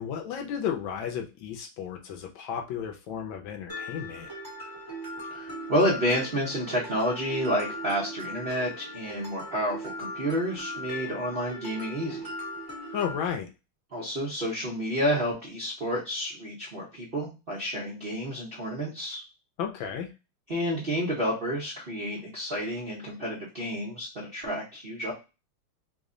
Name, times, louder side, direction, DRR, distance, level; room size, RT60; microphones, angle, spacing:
voice 1, 0.0-4.3 12.9-13.5 19.6-20.1, left 8 dB, 75° left, 3 dB, 1.3 m, -33 dB
Mallet percussion, 3.7-13.3, left 1 dB, 15° left, 0.9 m, -39 dB
voice 2, 5.3-12.3 13.9-19.2 20.5-25.1, equal, 55° right, -5 dB, 0.6 m, -30 dB
3.4 x 2.1 x 3.7 m, 0.29 s
omnidirectional pair, 2.3 m